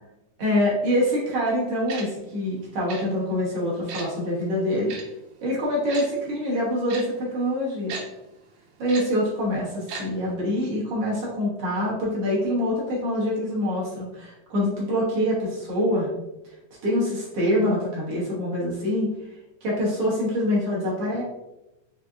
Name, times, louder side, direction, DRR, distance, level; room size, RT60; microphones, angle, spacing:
voice 1, 0.4-4.9 5.4-7.9 8.8-16.1 16.8-19.1 19.6-21.2, left 1 dB, 55° right, -6 dB, 1.7 m, -25 dB
Tick-tock, 1.9-2.0 2.9-3.0 3.9-4.1 4.9-5.0 5.9-6.0 6.9-7.0 7.9-8.0 8.9-9.0 9.9-10.0 10.3-10.4, right 5 dB, 90° right, 2.4 m, -34 dB
5.6 x 3.3 x 2.5 m, 0.95 s
omnidirectional pair, 3.7 m